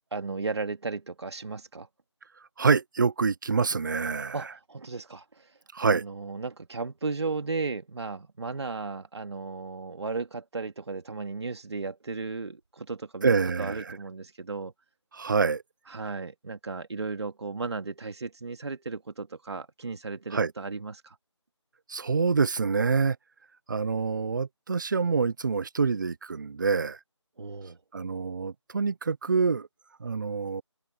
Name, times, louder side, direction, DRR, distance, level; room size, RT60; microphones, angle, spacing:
voice 1, 0.1-1.9 4.3-5.2 5.8-13.3 13.6-14.7 15.9-21.2 27.4-27.8, right 4 dB, 60° right, 2.8 m, -35 dB
voice 2, 2.6-4.5 5.7-6.0 13.2-13.9 15.1-15.6 20.3-20.5 21.9-23.2 23.7-27.0 27.9-29.7 30.0-30.6, right 5 dB, 40° right, 0.9 m, -26 dB
open air
figure-of-eight pair, 170°, 16 cm